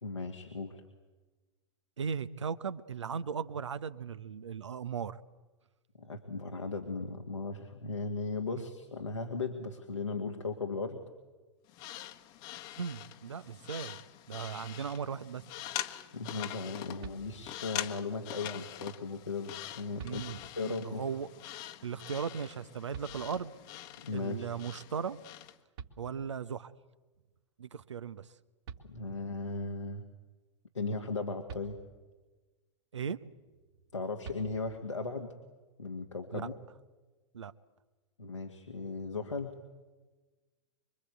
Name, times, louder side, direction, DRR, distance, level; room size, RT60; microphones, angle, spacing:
voice 1, 0.0-0.8 6.0-11.0 16.1-20.2 20.6-21.1 24.0-24.5 28.8-30.0 30.7-31.8 33.9-35.3 35.8-36.6 38.2-39.6, left 3 dB, 80° left, 2 dB, 2.1 m, -37 dB
voice 2, 2.0-5.2 8.6-8.7 12.8-14.0 14.3-15.5 20.0-21.3 21.8-23.5 24.1-25.2 26.0-26.7 27.6-28.3 29.0-29.2 32.9-33.2 36.3-36.5 37.3-37.5, right 6 dB, 75° right, 13 dB, 1.0 m, -37 dB
sound 1, 11.7-25.6, left 13 dB, 45° left, 1.4 m, -44 dB
sound 2, 17.0-17.8 19.3-19.4 20.0-20.7 22.9-23.7 25.4-25.5 25.8-26.6 28.3-28.4 28.6-29.4 31.5-32.3 34.2-35.0, right 7 dB, 55° right, 2.2 m, -49 dB
26.5 x 23.5 x 8.2 m, 1.3 s
figure-of-eight pair, 95°, 15 cm